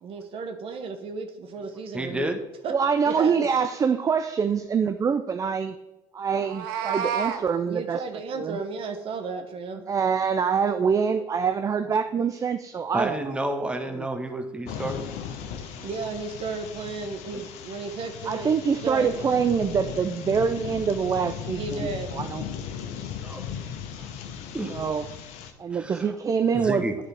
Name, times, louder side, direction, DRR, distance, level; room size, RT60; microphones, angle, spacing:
voice 1, 0.0-2.3 2.6-2.7 3.0-3.5 7.6-9.8 15.8-18.5 18.8-19.1 21.5-22.2, right 4 dB, 50° right, 6 dB, 0.9 m, -34 dB
voice 2, 1.9-2.4 9.7-9.8 12.9-15.1 15.8-15.9 17.3-17.4 18.3-18.4 23.2-23.5 24.0-24.1 24.5-24.9 25.7-26.1 26.5-27.0, right 1 dB, 10° right, 6 dB, 0.9 m, -31 dB
voice 3, 2.7-5.7 6.1-8.0 8.4-8.6 9.9-13.3 14.0-14.1 18.2-22.4 24.7-25.0 25.6-26.8, right 6 dB, 30° right, 9 dB, 0.4 m, -25 dB
Meow, 6.3-7.4, right 8 dB, 80° right, 0.6 m, -29 dB
sound 1, 14.6-25.5, left 8 dB, 70° left, 0.8 m, -37 dB
9.9 x 4.0 x 3.4 m, 1.0 s
hypercardioid pair, 70°, 12 cm